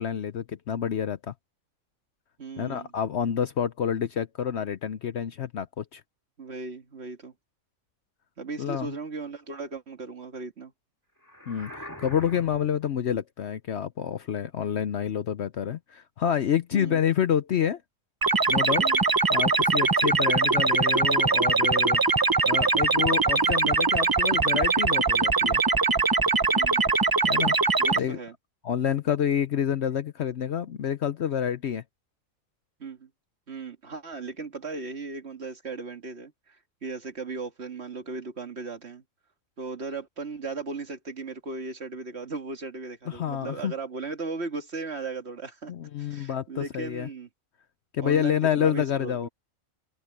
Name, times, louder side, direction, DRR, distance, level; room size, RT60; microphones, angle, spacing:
voice 1, 0.0-1.3 2.6-6.0 8.6-8.9 11.5-17.8 18.5-18.9 19.3-22.0 22.5-25.6 27.3-27.5 27.9-28.2 28.6-31.8 43.1-43.7 45.7-47.1 47.9-49.3, left 9 dB, 60° left, 0.9 m, -28 dB
voice 2, 2.4-2.9 6.4-7.3 8.4-10.7 16.7-17.0 18.8-19.0 26.5-26.8 27.8-28.3 32.8-33.1 33.5-39.0 39.6-45.7 46.0-47.3 48.0-49.3, right 4 dB, 50° right, 2.1 m, -37 dB
sound 1, 11.2-12.8, left 1 dB, 15° left, 2.0 m, -43 dB
sound 2, 18.2-28.0, right 4 dB, 30° right, 0.3 m, -22 dB
open air
omnidirectional pair, 1.5 m